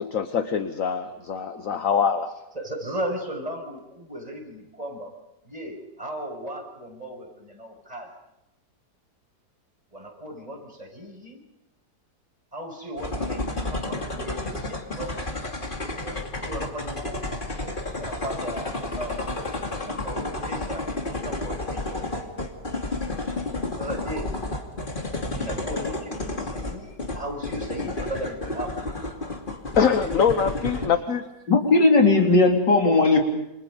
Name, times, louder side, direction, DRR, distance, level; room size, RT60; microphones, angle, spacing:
voice 1, 0.0-2.3 29.8-31.2, left 7 dB, 55° left, 8 dB, 1.5 m, -23 dB
voice 2, 2.5-5.1 5.4-8.1 9.9-11.4 12.5-15.3 16.0-19.2 19.7-22.1 23.7-24.3 25.3-28.7, right 1 dB, 20° right, 1 dB, 6.8 m, -36 dB
sound 1, 13.0-30.9, left 2 dB, 30° left, 2.7 m, -31 dB
voice 3, 31.5-33.2, left 3 dB, 90° left, 1 dB, 4.5 m, -17 dB
29.0 x 28.0 x 5.4 m, 0.88 s
omnidirectional pair, 1.8 m